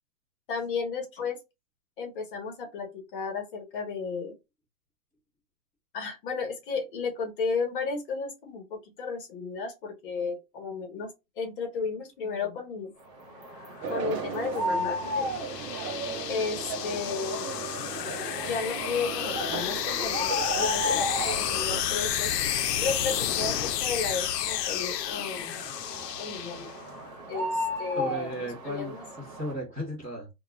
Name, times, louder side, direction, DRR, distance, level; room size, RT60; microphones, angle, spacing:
voice 1, 0.5-1.4 2.0-4.4 5.9-11.1 11.4-12.9 13.9-15.4 16.3-17.6 18.4-22.3 22.8-25.5 26.2-26.7 27.3-29.0, left 4 dB, 35° left, 0.9 m, -33 dB
sound 1, 13.2-29.5, left 1 dB, 55° right, 1.1 m, -36 dB
sound 2, 13.6-27.0, left 10 dB, 80° left, 0.6 m, -31 dB
sound 3, 13.8-21.8, right 6 dB, 75° right, 0.7 m, -37 dB
voice 2, 27.9-30.3, equal, 10° right, 0.7 m, -36 dB
2.3 x 2.3 x 2.9 m
hypercardioid pair, 150°, 48 cm